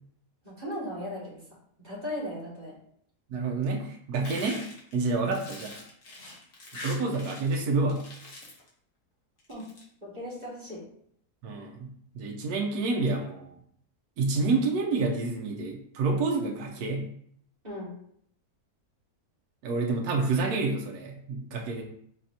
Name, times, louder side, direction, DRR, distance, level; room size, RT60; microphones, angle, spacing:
voice 1, 0.4-1.4 1.8-2.8 5.2-5.4 9.5-9.7 10.0-10.8 17.6-17.9, equal, 25° right, -7 dB, 1.8 m, -37 dB
voice 2, 3.3-4.6 4.9-5.7 6.8-8.0 11.4-13.5 14.2-17.1 19.6-21.8, right 3 dB, 75° right, 1 dB, 1.1 m, -28 dB
sound 1, 4.2-7.6 7.9-8.7 9.4-9.8, left 2 dB, 55° left, 1.5 m, -43 dB
4.5 x 4.1 x 2.7 m, 0.67 s
omnidirectional pair, 1.7 m